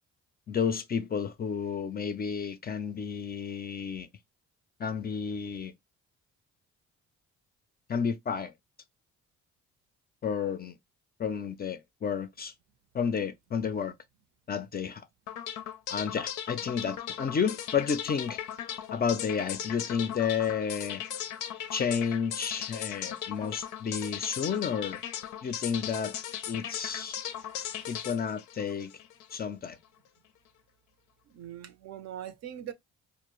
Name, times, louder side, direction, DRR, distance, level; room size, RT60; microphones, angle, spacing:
voice 1, 0.5-4.1 4.8-5.8 7.9-8.5 10.2-10.7 11.2-12.5 12.9-13.9 14.5-15.1 15.9-18.4 18.9-21.0 21.7-25.0 25.4-26.2 26.5-27.2 27.9-28.9 29.3-29.8, left 6 dB, 30° left, 0.4 m, -31 dB
sound 1, 15.3-29.4, left 10 dB, 85° left, 0.5 m, -38 dB
voice 2, 27.4-28.0 31.3-32.7, right 10 dB, 60° right, 0.5 m, -43 dB
2.4 x 2.0 x 2.9 m
cardioid pair, 90°, 30 cm